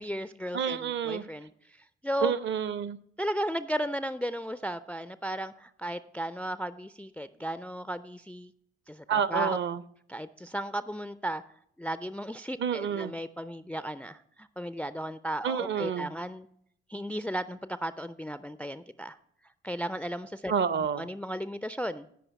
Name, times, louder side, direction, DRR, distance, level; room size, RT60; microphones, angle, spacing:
voice 1, 0.0-1.5 2.0-2.3 3.2-8.5 8.9-9.6 10.1-11.4 11.8-16.5 16.9-19.2 19.6-20.5 21.0-22.1, equal, 5° left, 14 dB, 0.4 m, -35 dB
voice 2, 0.5-1.2 2.2-3.0 9.1-9.8 12.6-13.1 15.4-16.1 20.5-21.1, right 7 dB, 40° right, 16 dB, 0.6 m, -29 dB
16.0 x 5.6 x 4.2 m, 0.68 s
figure-of-eight pair, 45°, 30 cm